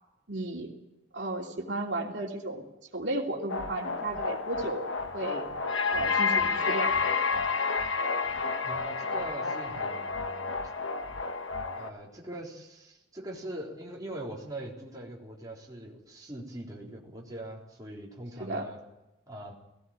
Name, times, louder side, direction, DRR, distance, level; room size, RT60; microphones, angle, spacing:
voice 1, 0.3-0.7 1.1-2.6 2.9-4.8 5.1-5.4 5.9-7.3 18.4-18.7, right 2 dB, 60° right, 1 dB, 3.1 m, -34 dB
sound 1, 3.5-11.9, left 4 dB, 85° left, 1.6 m, -30 dB
voice 2, 8.6-10.5 11.7-18.8 19.3-19.5, right 1 dB, 20° right, -3 dB, 3.7 m, -42 dB
17.5 x 17.0 x 8.9 m, 0.96 s
head